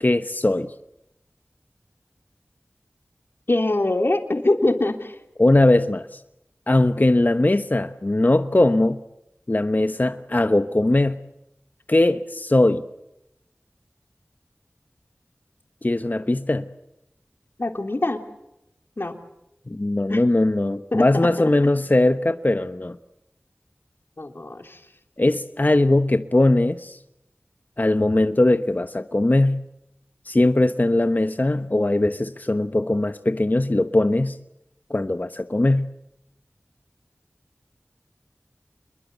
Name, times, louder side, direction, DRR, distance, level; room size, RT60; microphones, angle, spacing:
voice 1, 0.0-0.7 5.4-6.2 6.7-9.0 9.5-11.2 11.9-12.8 15.8-16.7 19.7-23.0 25.2-27.0 27.8-29.6 30.2-34.4 34.9-35.9, left 2 dB, 40° left, 10 dB, 1.1 m, -20 dB
voice 2, 3.5-5.1 17.6-18.2 19.0-19.1 20.1-20.2 20.9-21.3 21.6-21.8 24.2-24.8, left 2 dB, 55° left, 6 dB, 3.3 m, -23 dB
28.0 x 22.0 x 8.1 m, 0.86 s
wide cardioid pair, 45°, 4 cm